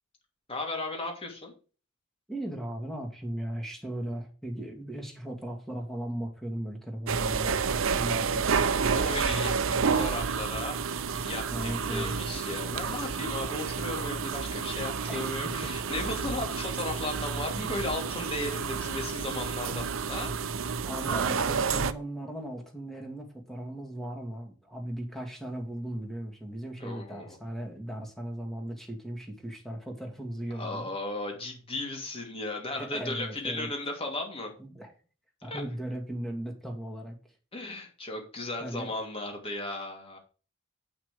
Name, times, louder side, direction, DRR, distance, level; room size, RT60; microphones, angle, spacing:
voice 1, 0.5-1.5 8.9-20.3 26.8-27.4 30.5-34.5 35.4-35.6 37.5-40.2, left 2 dB, 30° left, 1 dB, 2.9 m, -36 dB
voice 2, 2.3-8.7 11.5-12.2 15.1-15.7 20.8-30.9 32.8-33.7 34.6-34.9 35.4-37.2 38.6-38.9, right 1 dB, ahead, 1 dB, 2.3 m, -37 dB
sound 1, 7.1-21.9, right 5 dB, 75° right, 0.6 m, -30 dB
8.7 x 5.9 x 5.1 m, 0.36 s
head